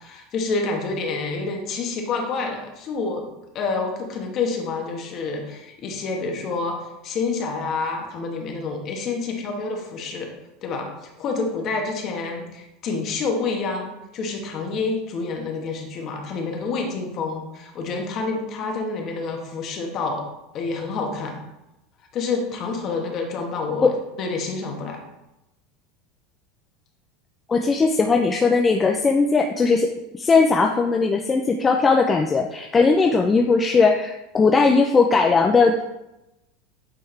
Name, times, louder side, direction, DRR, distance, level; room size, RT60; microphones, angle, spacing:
voice 1, 0.0-3.3 3.5-10.3 10.6-20.2 20.5-21.4 22.1-25.0, left 4 dB, 40° left, 2 dB, 1.3 m, -28 dB
voice 2, 27.5-29.9 30.2-35.8, left 4 dB, 20° left, 3 dB, 0.4 m, -18 dB
8.6 x 3.5 x 3.3 m, 0.93 s
supercardioid pair, 125°, 0 cm